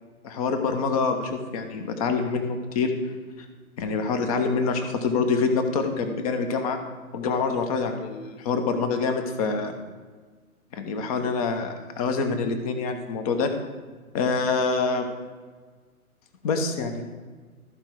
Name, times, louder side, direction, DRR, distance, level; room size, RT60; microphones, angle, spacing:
voice 1, 0.2-2.9 3.8-6.8 7.1-9.7 10.7-13.5 14.1-15.0 16.4-16.9, left 4 dB, 25° left, 6 dB, 0.9 m, -26 dB
13.5 x 4.8 x 4.6 m, 1.5 s
figure-of-eight pair, 125°, 44 cm